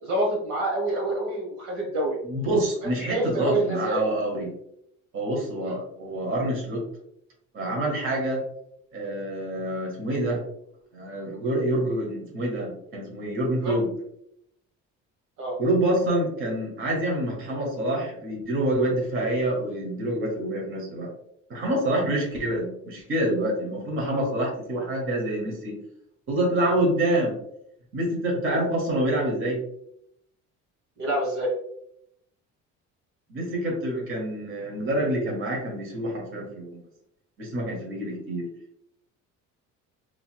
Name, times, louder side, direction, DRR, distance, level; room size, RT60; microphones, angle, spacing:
voice 1, 0.0-2.2 3.1-4.0 5.6-5.8 13.6-13.7 15.4-15.6 31.0-31.5, right 1 dB, 70° right, -1 dB, 1.3 m, -27 dB
voice 2, 2.2-4.5 5.1-6.8 7.5-8.4 8.9-10.4 10.9-13.9 15.6-21.1 21.5-25.8 26.3-27.4 27.9-29.6 33.3-36.8 37.4-38.4, right 1 dB, 45° right, -1 dB, 1.4 m, -27 dB
4.0 x 3.1 x 2.2 m, 0.73 s
cardioid pair, 120°, 30 cm